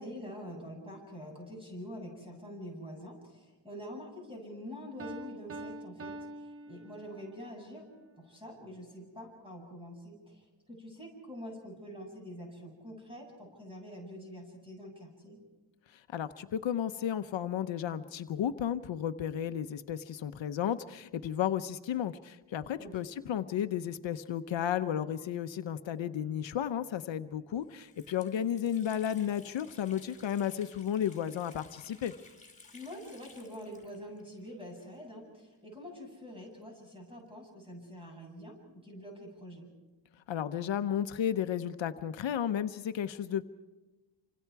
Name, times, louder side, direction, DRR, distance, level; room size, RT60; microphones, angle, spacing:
voice 1, 0.0-6.2 6.7-7.9 8.2-15.4 22.8-23.1 32.7-39.7, equal, 10° right, 0 dB, 7.8 m, -46 dB
Piano, 5.0-7.5, right 2 dB, 30° right, 0.9 m, -44 dB
voice 2, 16.1-32.1 40.3-43.4, left 9 dB, 75° left, 9 dB, 0.9 m, -33 dB
Water tap faucet, 27.1-27.2 27.6-35.3 35.5-35.6 36.5-38.0, left 3 dB, 15° left, 4.9 m, -58 dB
28.5 x 26.0 x 4.7 m, 1.2 s
wide cardioid pair, 155°, 46 cm